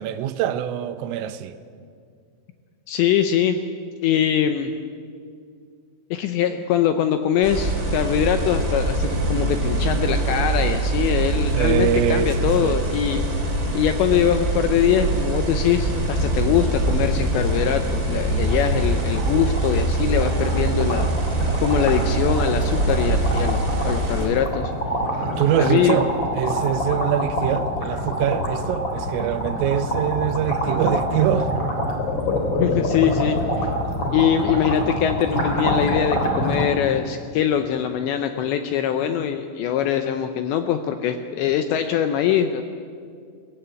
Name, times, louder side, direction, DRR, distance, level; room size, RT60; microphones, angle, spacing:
voice 1, 0.0-1.6 11.5-12.8 18.4-18.6 25.4-31.5, right 10 dB, 85° right, 3.4 m, -24 dB
voice 2, 2.9-3.6 4.0-4.7 6.1-13.2 13.7-21.1 21.6-24.7 25.6-26.0 32.6-33.7 34.1-42.6, left 9 dB, 80° left, 2.6 m, -22 dB
sound 1, 7.4-24.3, right 2 dB, 20° right, 2.7 m, -23 dB
sound 2, 17.5-17.7 18.0-18.1 18.4-36.6, equal, 30° left, 2.9 m, -26 dB
22.0 x 17.0 x 9.0 m
omnidirectional pair, 6.0 m